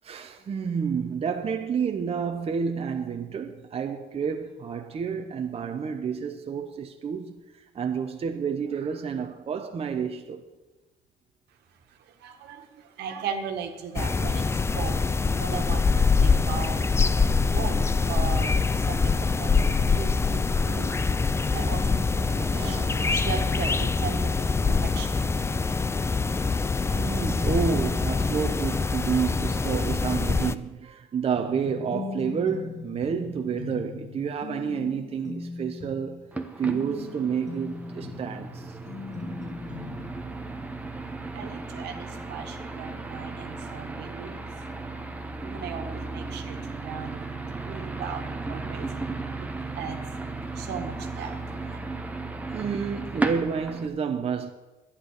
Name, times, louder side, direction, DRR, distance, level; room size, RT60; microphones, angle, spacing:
voice 1, 0.0-10.4 22.5-23.4 23.8-23.9 26.9-36.2 36.6-38.8 45.4-45.7 52.5-54.5, right 6 dB, 35° right, 0.9 m, -30 dB
voice 2, 12.2-15.0 15.4-16.9 17.5-21.0 21.5-22.8 23.1-25.1 41.3-44.5 45.5-47.4 47.6-48.9 49.4-49.5 49.7-50.0 50.5-51.8, right 7 dB, 80° right, 1.7 m, -37 dB
sound 1, 14.0-30.6, left 4 dB, 15° left, 0.4 m, -24 dB
sound 2, 31.4-40.2, left 5 dB, 45° left, 1.4 m, -39 dB
sound 3, 36.3-53.9, right 3 dB, 10° right, 1.0 m, -35 dB
11.5 x 10.0 x 6.6 m
cardioid pair, 110°, 17 cm